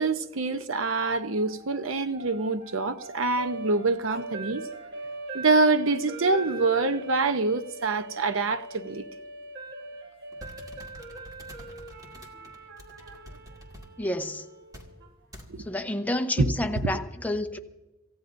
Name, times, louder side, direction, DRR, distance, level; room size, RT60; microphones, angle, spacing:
voice 1, 0.0-4.6 5.3-9.0 15.5-15.6 16.4-16.5 16.9-17.0, right 3 dB, 75° right, 0.8 m, -25 dB
sound 1, 1.0-15.1, right 2 dB, 55° right, 1.5 m, -42 dB
sound 2, 10.3-13.9 14.7-14.9 15.3-15.5, equal, 20° right, 2.1 m, -47 dB
voice 2, 14.0-14.4 15.6-17.6, left 1 dB, 10° left, 0.8 m, -29 dB
26.5 x 16.0 x 2.6 m
head